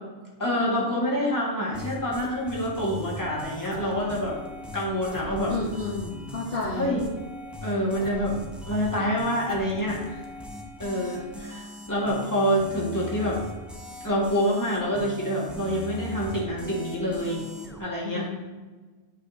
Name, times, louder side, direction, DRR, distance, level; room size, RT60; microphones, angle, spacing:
voice 1, 0.4-4.4 4.7-5.5 6.7-7.0 7.6-8.4 8.6-10.2 10.8-13.4 14.0-17.4 17.8-18.2, equal, 15° left, -5 dB, 1.7 m, -27 dB
sound 1, 1.7-17.8, left 1 dB, ahead, 0.6 m, -40 dB
voice 2, 5.5-6.9 18.0-18.3, left 3 dB, 60° left, -4 dB, 1.2 m, -31 dB
9.2 x 5.2 x 2.7 m, 1.3 s
omnidirectional pair, 1.1 m